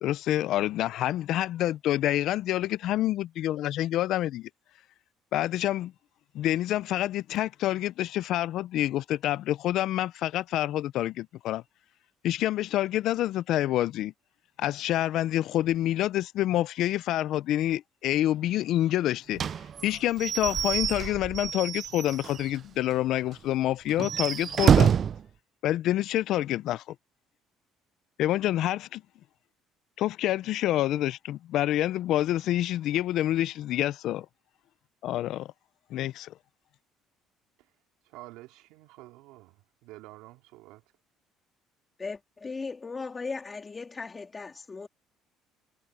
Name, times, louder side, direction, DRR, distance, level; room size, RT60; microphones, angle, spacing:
voice 1, 0.0-4.5 5.3-5.9 6.3-11.6 12.2-14.1 14.6-19.4 19.8-24.9 25.6-26.9 28.2-29.0 30.0-34.3 35.0-35.5 35.9-36.3, left 13 dB, 65° left, 0.4 m, -27 dB
Slam / Squeak / Wood, 19.4-22.6 22.9-23.0 23.3-23.4 23.9-25.2, right 8 dB, 40° right, 0.3 m, -26 dB
voice 2, 38.0-40.8, right 18 dB, 85° right, 3.1 m, -49 dB
voice 3, 42.0-44.9, left 4 dB, 25° left, 2.9 m, -37 dB
cardioid pair, 110°, 0 cm